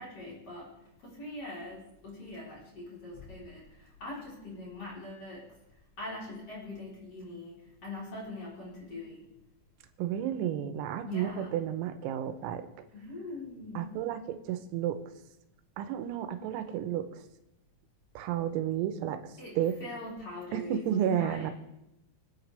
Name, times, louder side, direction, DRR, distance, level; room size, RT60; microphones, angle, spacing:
voice 1, 0.0-9.2 11.0-11.5 12.9-14.0 19.4-21.5, left 2 dB, 30° left, -6 dB, 4.7 m, -42 dB
voice 2, 10.0-12.6 13.8-15.0 15.8-17.2 18.2-19.8 20.5-21.5, right 10 dB, 90° right, 9 dB, 3.6 m, -32 dB
26.5 x 9.0 x 3.4 m, 0.88 s
omnidirectional pair, 5.9 m